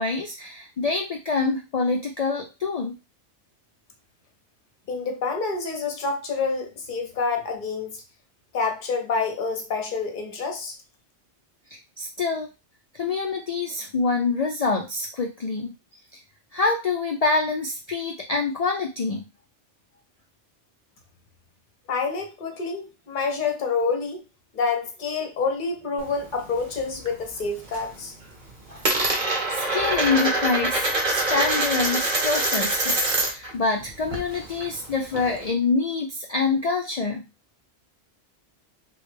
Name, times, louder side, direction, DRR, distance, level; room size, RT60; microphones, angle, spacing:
voice 1, 0.0-3.0 12.0-12.5 12.9-15.7 16.5-19.2 28.7-29.2 29.5-37.2, left 4 dB, 80° left, 2 dB, 0.3 m, -26 dB
voice 2, 4.9-8.0 8.5-10.8 21.9-24.2 24.5-28.1, left 4 dB, 50° left, 4 dB, 0.9 m, -27 dB
Coin (dropping), 26.0-27.1 27.5-28.0 28.2-33.5 33.8-35.5, right 2 dB, 45° right, 0.9 m, -25 dB
3.1 x 2.3 x 3.2 m, 0.28 s
omnidirectional pair, 1.2 m